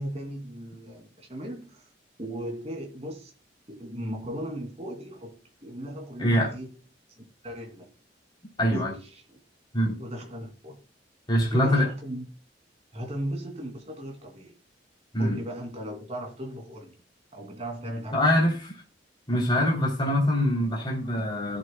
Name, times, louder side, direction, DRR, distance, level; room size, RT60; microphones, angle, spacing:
voice 1, 0.0-1.9 2.2-3.3 3.7-6.7 7.4-7.9 8.6-9.4 10.0-10.8 11.5-12.3 12.9-14.5 15.2-17.0 17.3-18.6, equal, 35° right, 2.8 m, -37 dB
voice 2, 6.2-6.5 8.6-8.9 9.7-10.0 11.3-11.9 15.1-15.4 18.1-18.7 19.3-21.6, equal, 25° left, 3.4 m, -24 dB
15.5 x 7.6 x 2.3 m
head